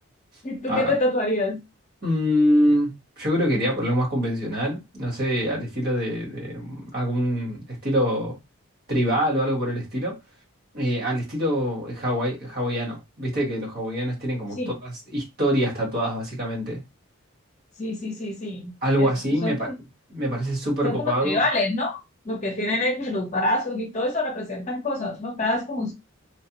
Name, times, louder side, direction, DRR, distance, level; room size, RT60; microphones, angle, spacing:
voice 1, 0.4-1.6 14.6-14.7 17.8-18.7 19.0-19.1 19.4-19.7 20.8-22.0 22.2-25.9, left 2 dB, 35° left, 0.7 m, -26 dB
voice 2, 2.0-8.4 8.9-10.2 10.7-16.8 18.8-19.7 20.1-21.4, equal, 45° right, 1.3 m, -25 dB
3.2 x 2.0 x 2.9 m
head